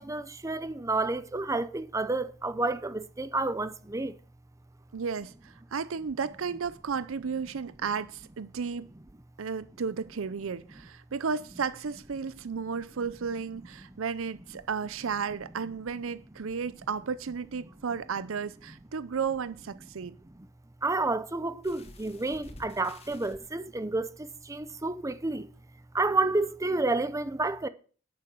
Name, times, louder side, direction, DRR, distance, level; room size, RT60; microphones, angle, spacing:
voice 1, 0.0-4.1 20.8-25.5 25.9-27.7, right 2 dB, 15° right, 0.6 m, -30 dB
voice 2, 4.9-8.9 9.4-20.2, right 6 dB, 80° right, 0.6 m, -33 dB
sound 1, 21.6-23.4 24.3-24.4 24.9-25.0, left 2 dB, 30° left, 1.5 m, -50 dB
9.5 x 8.7 x 6.1 m
head